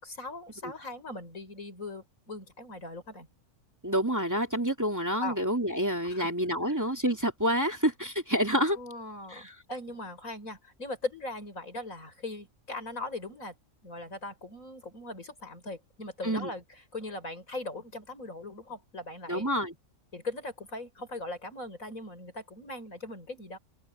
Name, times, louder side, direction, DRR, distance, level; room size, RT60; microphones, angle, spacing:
voice 1, 0.0-3.3 5.2-5.4 6.1-6.3 6.7-6.8 8.8-13.5 13.8-16.6 16.9-19.5 20.1-23.6, left 2 dB, 80° left, 6.3 m, -39 dB
voice 2, 3.8-8.8 9.3-9.5 16.2-16.5 19.3-19.8, equal, 15° right, 2.5 m, -28 dB
open air
omnidirectional pair, 1.4 m